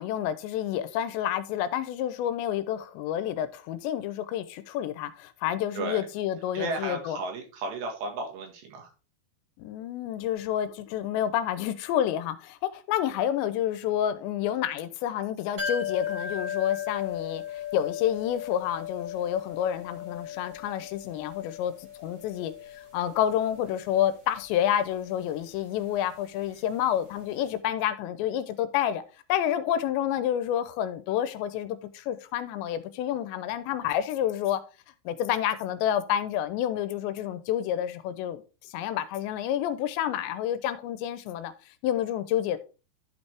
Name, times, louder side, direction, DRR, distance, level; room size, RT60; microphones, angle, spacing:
voice 1, 0.0-7.2 9.6-29.0 29.3-34.6 35.1-41.5 41.8-42.6, left 10 dB, 90° left, 2.9 m, -29 dB
voice 2, 5.8-6.1 6.5-8.9, right 3 dB, 75° right, 3.8 m, -34 dB
sound 1, 15.6-27.2 27.4-27.5, left 8 dB, 25° right, 2.4 m, -38 dB
11.5 x 5.4 x 3.4 m
omnidirectional pair, 5.1 m